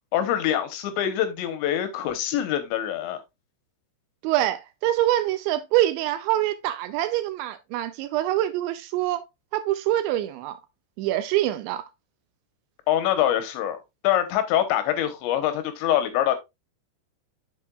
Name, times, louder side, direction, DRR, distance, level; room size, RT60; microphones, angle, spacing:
voice 1, 0.1-3.2 12.9-13.8 14.0-16.4, left 11 dB, 75° left, 3.1 m, -24 dB
voice 2, 4.2-9.2 9.5-10.6 11.0-11.8, right 13 dB, 80° right, 2.7 m, -25 dB
8.4 x 7.2 x 2.3 m
omnidirectional pair, 5.6 m